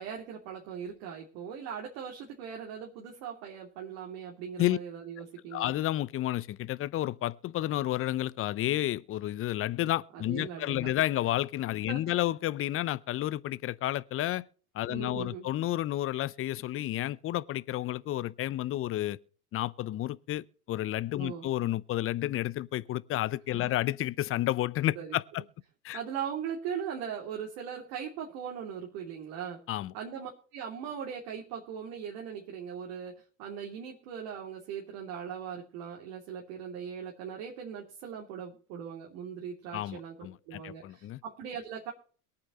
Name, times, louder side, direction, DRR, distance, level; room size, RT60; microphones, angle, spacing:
voice 1, 0.0-5.7 10.1-10.9 11.9-12.0 14.9-15.5 21.2-21.5 23.5-23.7 24.9-25.2 25.9-29.6 29.9-41.9, right 7 dB, 60° right, 2.9 m, -39 dB
voice 2, 5.5-14.4 14.7-19.2 19.5-25.4 25.8-26.0 29.7-29.9 39.7-41.2, left 14 dB, 30° left, 0.6 m, -31 dB
22.5 x 8.7 x 3.0 m
hypercardioid pair, 85°, 46 cm